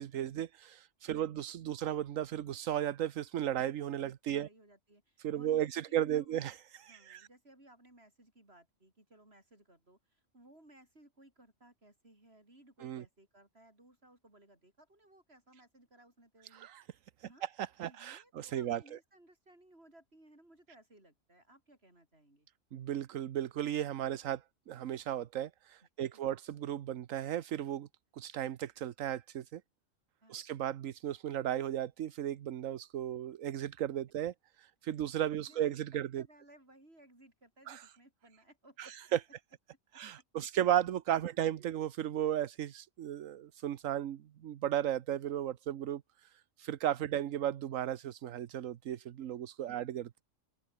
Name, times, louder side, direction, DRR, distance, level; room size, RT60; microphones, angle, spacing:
voice 1, 0.0-4.5 5.2-7.3 12.8-13.0 16.5-16.8 17.2-19.0 22.7-27.9 28.1-29.6 30.3-36.2 37.7-37.8 38.8-39.2 39.9-50.2, right 11 dB, 85° right, 1.2 m, -35 dB
voice 2, 4.0-6.4 6.8-16.7 17.2-17.5 17.8-22.5 25.8-26.4 30.2-30.4 35.5-38.9 39.9-40.0 41.4-41.7 49.7-49.8, right 1 dB, 50° right, 7.7 m, -61 dB
omnidirectional pair, 1.3 m